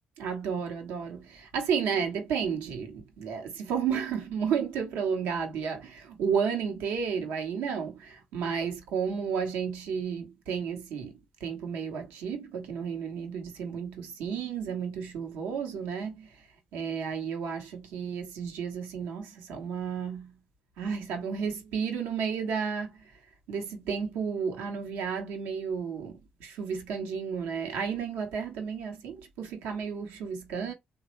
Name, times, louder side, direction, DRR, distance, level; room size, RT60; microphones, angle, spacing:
voice 1, 0.2-20.4 20.8-23.1 23.5-30.7, right 6 dB, 80° right, 0.9 m, -32 dB
3.2 x 2.2 x 3.0 m
supercardioid pair, 55°, 4 cm